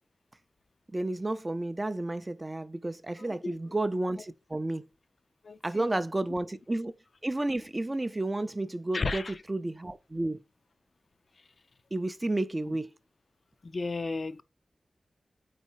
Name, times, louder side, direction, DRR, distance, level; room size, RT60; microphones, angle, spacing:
voice 1, 0.9-4.9 5.6-6.9 7.2-9.2 9.5-10.4 11.9-12.9, right 2 dB, 20° right, 0.5 m, -31 dB
voice 2, 5.4-6.0 8.9-9.3 12.7-12.8 13.6-14.4, left 3 dB, 50° left, 0.5 m, -34 dB
4.4 x 4.2 x 5.4 m
wide cardioid pair, 120°, 0 cm